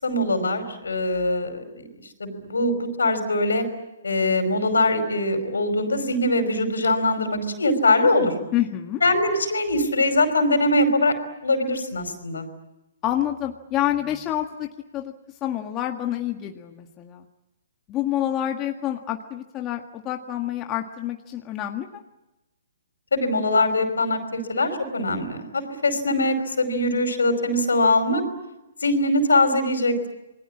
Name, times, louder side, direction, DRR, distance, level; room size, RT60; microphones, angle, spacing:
voice 1, 0.0-1.8 2.2-3.6 4.0-8.3 9.0-11.1 11.4-12.5 23.1-28.2 28.8-30.1, left 2 dB, 80° left, 8 dB, 5.2 m, -22 dB
voice 2, 8.5-9.0 13.0-15.1 15.4-17.3 17.9-22.0, left 12 dB, 25° left, 3 dB, 1.7 m, -28 dB
28.5 x 21.5 x 8.7 m, 0.99 s
figure-of-eight pair, 130°, 0 cm